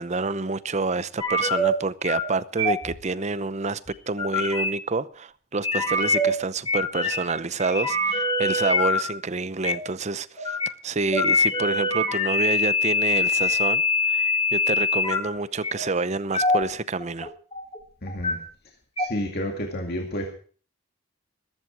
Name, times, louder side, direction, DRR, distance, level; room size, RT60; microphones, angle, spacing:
voice 1, 0.0-3.8 4.1-10.6 10.8-13.8 14.1-17.3, right 3 dB, 35° right, 0.7 m, -28 dB
sound 1, 1.2-1.7 2.0-2.3 2.6-2.9 3.9-4.7 5.6-6.3 6.7-7.3 7.6-9.0 9.6-9.8 10.4-10.7 11.1-15.2 15.6-15.9 16.3-16.6 17.0-17.8 18.1-18.3 19.0-19.1, left 2 dB, 25° left, 3.5 m, -23 dB
voice 2, 18.0-18.4 19.0-20.3, equal, 50° left, 2.3 m, -30 dB
15.0 x 14.0 x 4.8 m
head